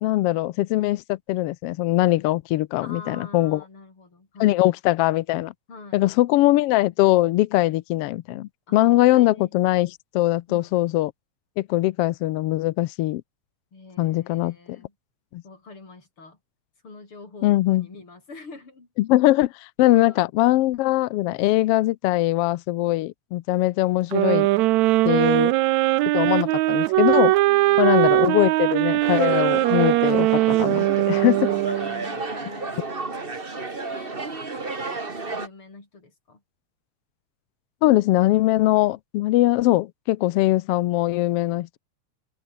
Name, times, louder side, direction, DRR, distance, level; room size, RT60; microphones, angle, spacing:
voice 1, 0.0-3.6 4.4-5.5 5.9-11.1 11.6-13.2 14.0-14.8 15.3-15.4 17.4-17.9 19.0-24.5 25.0-25.5 26.1-27.3 27.8-31.4 37.8-41.8, left 17 dB, 80° left, 1.3 m, -21 dB
voice 2, 2.8-4.8 5.7-6.0 8.7-9.5 10.5-10.7 13.7-14.9 15.4-16.4 16.8-18.9 19.9-20.3 25.1-26.2 27.5-28.0 31.0-36.4, left 3 dB, 45° left, 6.4 m, -45 dB
sound 1, 24.1-32.1, right 18 dB, 80° right, 1.9 m, -20 dB
sound 2, 29.0-35.5, right 3 dB, 20° right, 1.9 m, -32 dB
open air
omnidirectional pair, 3.4 m